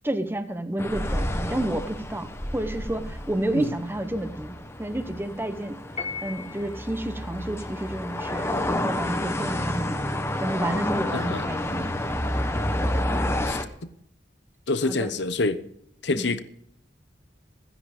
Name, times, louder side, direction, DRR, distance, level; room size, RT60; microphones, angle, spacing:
voice 1, 0.0-5.8 6.2-10.0 10.4-12.3 14.8-15.1 16.2-16.4, right 1 dB, 10° right, 9 dB, 1.0 m, -30 dB
sound 1, 0.8-13.6, left 1 dB, 15° left, 1.0 m, -30 dB
Piano, 6.0-6.9, left 5 dB, 35° left, 1.4 m, -35 dB
voice 2, 11.1-11.4 13.5-13.6 14.7-15.6 16.0-16.4, left 3 dB, 70° left, 12 dB, 0.9 m, -26 dB
15.0 x 10.0 x 5.0 m, 0.71 s
head